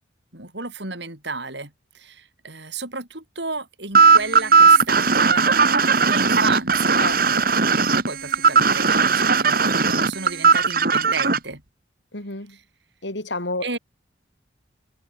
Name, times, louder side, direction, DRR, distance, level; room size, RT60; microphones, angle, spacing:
voice 1, 0.3-7.5 7.9-11.6 13.6-13.8, right 4 dB, 65° right, 6.8 m, -32 dB
sound 1, 3.9-11.4, right 5 dB, 50° right, 2.5 m, -17 dB
voice 2, 7.0-7.5 12.1-12.6 13.0-13.8, left 2 dB, 70° left, 5.3 m, -31 dB
head